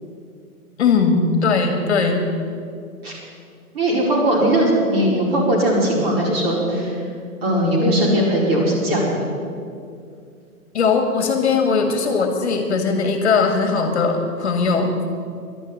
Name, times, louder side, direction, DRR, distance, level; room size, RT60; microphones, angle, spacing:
voice 1, 0.8-2.2 10.7-14.9, left 4 dB, 45° left, 5 dB, 1.7 m, -19 dB
voice 2, 3.7-6.9 7.4-9.2, right 1 dB, 40° right, -3 dB, 4.8 m, -19 dB
11.5 x 11.0 x 8.9 m, 2.3 s
hypercardioid pair, 165°, 46 cm